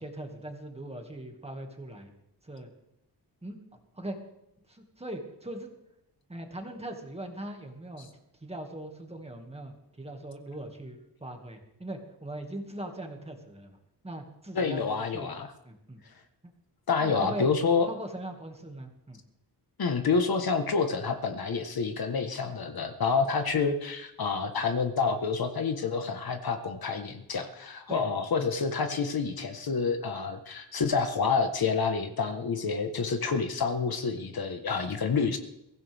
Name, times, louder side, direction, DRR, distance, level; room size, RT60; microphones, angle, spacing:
voice 1, 0.0-2.1 2.4-2.7 3.4-3.6 3.9-4.2 4.7-5.7 6.3-8.1 8.4-13.8 14.0-15.3 15.6-16.0 16.4-16.5 17.0-17.5 17.9-19.2 27.9-28.1, right 1 dB, 15° right, 3 dB, 2.1 m, -40 dB
voice 2, 14.5-15.5 16.9-17.9 19.8-35.4, left 5 dB, 60° left, 7 dB, 1.4 m, -28 dB
23.0 x 15.5 x 3.6 m, 0.84 s
wide cardioid pair, 180°, 42 cm